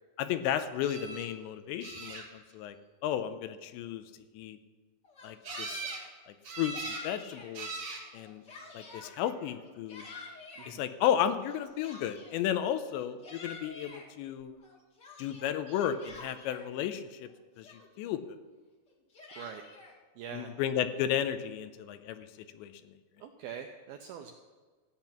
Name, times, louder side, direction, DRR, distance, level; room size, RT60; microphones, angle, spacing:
voice 1, 0.2-2.8 3.0-4.0 4.3-4.6 5.2-5.9 6.3-7.8 8.1-8.4 8.7-10.1 10.7-14.5 15.2-17.3 17.6-18.2 20.3-22.3 22.5-22.7, left 10 dB, 90° left, 11 dB, 2.9 m, -33 dB
sound 1, 0.8-1.3 1.8-2.5 5.4-6.0 6.4-7.1 7.5-8.0 9.0-9.4 15.7-15.8 16.1-16.2, right 4 dB, 50° right, 2.1 m, -41 dB
Yell, 5.0-6.1 6.7-7.5 8.0-9.1 9.6-10.7 11.5-12.4 13.0-14.1 14.6-16.7 17.3-17.4 17.6-18.1 18.9-19.9, left 3 dB, 50° left, 1.2 m, -48 dB
voice 2, 20.2-20.5 23.2-24.3, right 8 dB, 85° right, 4 dB, 2.1 m, -43 dB
14.5 x 8.9 x 5.9 m, 1.4 s
omnidirectional pair, 5.1 m